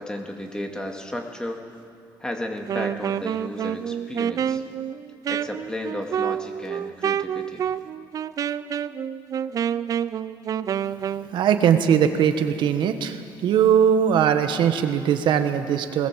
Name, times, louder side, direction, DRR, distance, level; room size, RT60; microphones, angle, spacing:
voice 1, 0.0-1.6 2.2-4.6 5.3-7.6, left 1 dB, 10° left, 3 dB, 2.1 m, -33 dB
Wind instrument woodwind instrument, 2.6-11.3, right 9 dB, 45° right, 0.5 m, -28 dB
voice 2, 11.3-16.1, right 8 dB, 70° right, 7 dB, 1.5 m, -20 dB
20.5 x 19.0 x 7.5 m, 2.4 s
cardioid pair, 130°, 8 cm